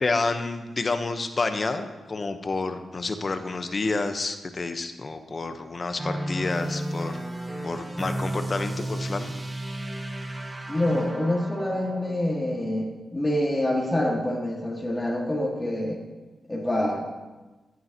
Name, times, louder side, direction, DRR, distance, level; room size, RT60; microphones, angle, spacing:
voice 1, 0.0-7.2 7.6-9.3, left 3 dB, 45° left, 8 dB, 0.9 m, -29 dB
sound 1, 6.0-12.2, right 1 dB, 25° right, 1.6 m, -33 dB
voice 2, 10.7-16.0 16.5-17.0, left 1 dB, 15° left, -2 dB, 1.8 m, -26 dB
12.5 x 8.7 x 2.9 m, 1.2 s
cardioid pair, 60°, 0 cm